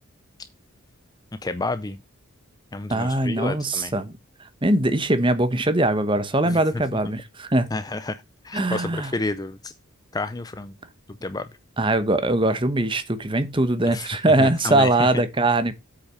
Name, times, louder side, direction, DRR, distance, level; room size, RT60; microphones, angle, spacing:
voice 1, 1.4-2.0 2.7-3.9 6.4-6.6 7.7-9.7 10.1-10.7 11.2-11.5 13.9-15.1, left 2 dB, 15° left, 0.4 m, -30 dB
voice 2, 2.9-4.1 4.4-7.7 8.5-9.1 11.8-15.7, right 2 dB, 25° right, 1.0 m, -21 dB
8.3 x 5.7 x 5.6 m
head